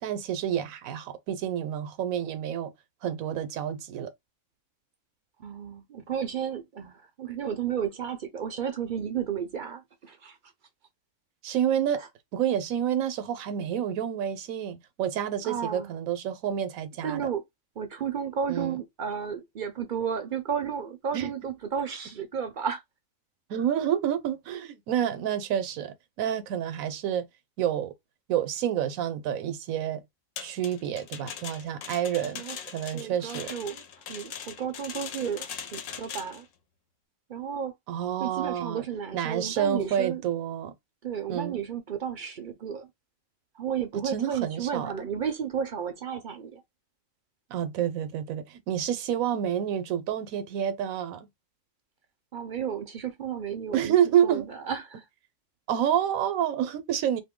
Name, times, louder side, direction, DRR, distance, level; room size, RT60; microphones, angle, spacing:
voice 1, 0.0-2.7 3.0-4.1 11.4-12.0 12.3-17.2 18.5-18.8 21.1-21.3 23.5-27.3 27.6-27.9 28.3-30.0 30.4-32.4 32.7-33.5 37.9-38.8 39.1-40.7 41.3-41.6 44.0-45.1 47.5-51.3 53.7-54.4 55.7-57.2, right 9 dB, 85° right, 1.1 m, -28 dB
voice 2, 5.4-10.4 12.0-12.1 15.4-15.9 17.0-17.4 17.8-22.8 31.9-32.0 32.4-32.6 32.9-33.8 34.1-36.5 37.3-37.7 38.2-40.2 41.0-42.9 43.5-46.6 52.3-55.0, right 7 dB, 60° right, 0.5 m, -33 dB
sound 1, 30.4-36.4, left 8 dB, 75° left, 1.0 m, -40 dB
2.7 x 2.6 x 3.6 m
omnidirectional pair, 1.4 m